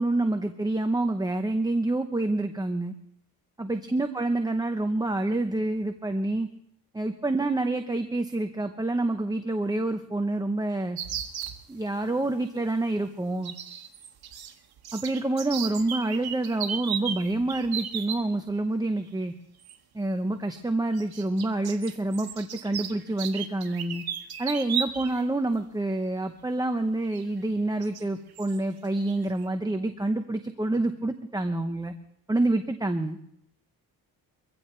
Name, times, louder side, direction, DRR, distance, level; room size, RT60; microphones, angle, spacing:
voice 1, 0.0-2.9 3.6-6.5 6.9-11.0 11.7-13.5 14.9-19.3 19.9-24.0 24.4-31.9 32.3-33.2, right 2 dB, 10° right, 6 dB, 0.8 m, -27 dB
sound 1, 11.0-11.6 13.4-14.5 14.8-18.2 19.6-19.7 20.9-25.2 25.5-25.6 27.1-27.2 27.8-28.0 28.4-28.6, right 8 dB, 85° right, 1.4 m, -35 dB
23.0 x 15.5 x 3.2 m, 0.73 s
cardioid pair, 105°, 37 cm